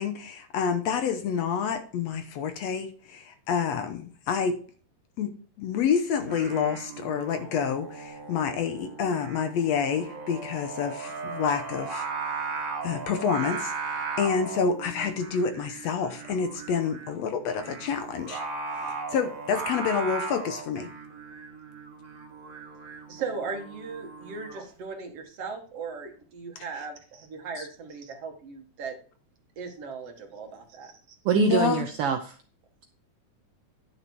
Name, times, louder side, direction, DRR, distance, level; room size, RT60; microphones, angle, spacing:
voice 1, 0.0-4.6 5.2-12.1 12.8-18.4 18.8-20.9 31.3-31.8, left 6 dB, 70° left, 8 dB, 1.9 m, -28 dB
Singing, 6.2-24.7, right 4 dB, 35° right, 1.3 m, -37 dB
voice 2, 23.1-29.0 29.6-31.2, right 5 dB, 55° right, 4 dB, 2.4 m, -38 dB
voice 3, 31.2-32.4, right 8 dB, 85° right, 6 dB, 1.2 m, -24 dB
10.5 x 6.5 x 4.6 m, 0.42 s
omnidirectional pair, 3.5 m